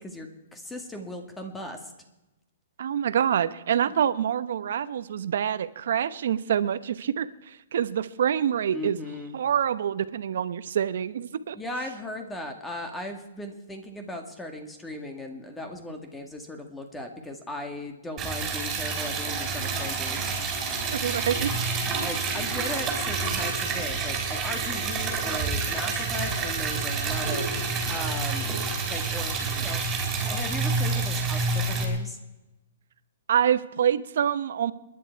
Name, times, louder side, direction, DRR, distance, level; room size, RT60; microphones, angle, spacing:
voice 1, 0.0-1.9 3.9-4.0 8.7-9.4 11.5-20.3 22.0-27.5 27.9-28.5 28.8-29.8 30.2-32.2, left 1 dB, 5° left, 5 dB, 1.8 m, -37 dB
voice 2, 2.8-9.0 9.3-11.6 20.9-21.9 33.3-34.7, right 9 dB, 65° right, 14 dB, 0.9 m, -26 dB
Liquid, 18.2-31.8, right 4 dB, 15° right, 3.6 m, -28 dB
28.5 x 11.0 x 4.6 m, 1.0 s
hypercardioid pair, 160°, 0 cm